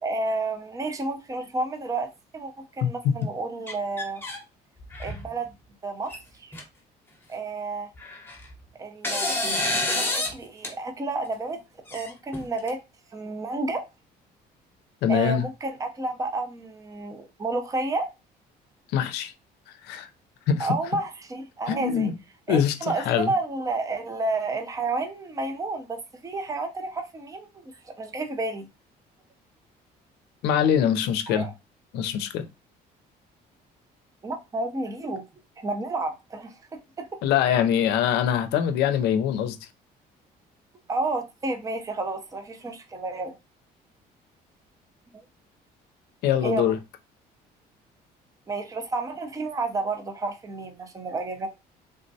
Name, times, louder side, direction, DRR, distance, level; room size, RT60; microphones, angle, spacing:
voice 1, 0.0-4.2 5.0-5.5 5.8-6.1 6.4-6.5 7.3-7.9 8.8-11.6 11.9-12.8 13.1-13.9 15.1-18.1 20.6-22.1 22.5-28.7 31.3-31.5 34.2-35.2 35.6-37.1 40.9-43.3 46.4-46.7 48.5-51.5, right 3 dB, 20° right, 0.5 m, -31 dB
sound 1, 3.7-4.4 4.8-5.3 6.1-6.2 6.5-6.6 8.0-8.5 9.0-10.3 10.6-10.7 11.9-12.7, left 2 dB, 10° left, 0.8 m, -28 dB
voice 2, 15.0-15.5 18.9-19.3 19.8-20.1 20.5-20.7 21.7-22.1 22.5-23.3 30.4-31.5 31.9-32.5 37.2-39.6 46.2-46.8, left 9 dB, 85° left, 0.5 m, -23 dB
3.4 x 2.1 x 2.6 m
cardioid pair, 110°, 17 cm